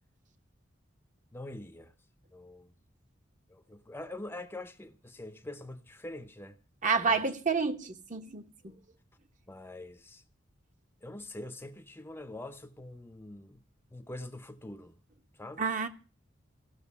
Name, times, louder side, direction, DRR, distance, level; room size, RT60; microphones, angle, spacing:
voice 1, 1.3-1.9 2.3-2.7 3.5-6.6 6.9-7.3 9.5-10.2 11.0-13.6 13.9-15.0 15.3-15.6, left 1 dB, 10° left, 0.7 m, -44 dB
voice 2, 6.8-8.7 15.6-15.9, right 5 dB, 40° right, 1.2 m, -29 dB
16.5 x 6.5 x 9.8 m
head